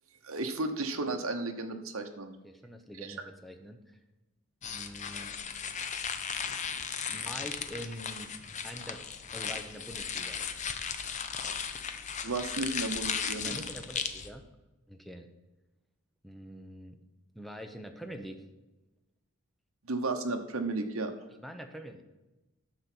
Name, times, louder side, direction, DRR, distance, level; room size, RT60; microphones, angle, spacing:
voice 1, 0.2-2.3 3.0-3.2 12.2-13.6 19.9-21.1, right 2 dB, 70° right, 5 dB, 1.0 m, -33 dB
voice 2, 2.4-4.0 4.6-5.4 7.1-8.3 8.6-9.0 9.3-10.4 13.4-14.4 14.9-15.3 16.2-17.0 17.3-18.4 21.3-22.0, equal, ahead, 5 dB, 0.8 m, -45 dB
sound 1, 4.6-14.3, left 7 dB, 35° left, 0.6 m, -36 dB
10.0 x 6.8 x 4.5 m, 1.0 s
head